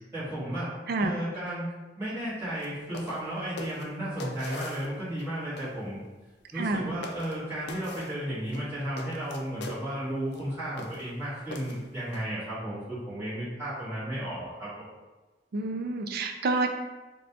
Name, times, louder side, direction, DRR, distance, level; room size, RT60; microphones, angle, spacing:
voice 1, 0.1-1.7 2.0-6.0 6.5-14.9, right 1 dB, 15° right, -13 dB, 1.1 m, -34 dB
sound 1, 2.5-2.7 2.9-3.2 3.6-5.3 5.6-5.8 6.6-6.7 7.0-7.4 7.7-8.1 8.5-9.8 10.3-10.4 10.8-11.1 11.5-12.2, left 2 dB, 65° left, 0.4 m, -41 dB
voice 2, 6.6-6.9 15.5-16.7, right 3 dB, 60° right, 5 dB, 0.4 m, -28 dB
4.1 x 2.2 x 2.8 m, 1.2 s
head